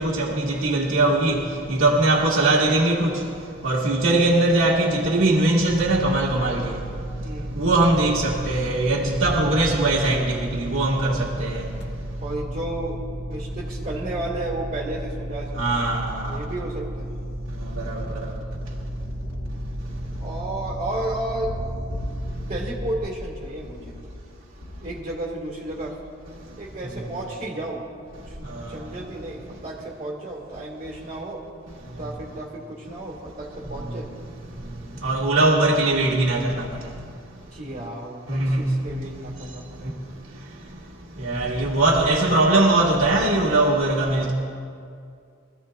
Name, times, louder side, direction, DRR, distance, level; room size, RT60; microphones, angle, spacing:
voice 1, 0.0-1.4 1.7-3.2 3.6-6.7 7.6-11.7 15.6-16.3 17.8-18.3 28.6-28.7 35.0-36.7 38.3-38.8 41.2-44.3, right 2 dB, 85° right, 1.6 m, -21 dB
sound 1, 5.7-23.1, right 1 dB, 55° left, 1.3 m, -33 dB
voice 2, 7.2-7.6 12.2-15.8 16.3-17.1 20.2-21.5 22.5-24.0 24.8-26.0 26.6-27.8 28.2-31.4 32.0-34.1 37.5-40.0, right 1 dB, 35° right, 1.9 m, -33 dB
Thunder, 13.7-31.7, left 1 dB, 90° left, 2.1 m, -42 dB
24.5 x 15.0 x 2.3 m
head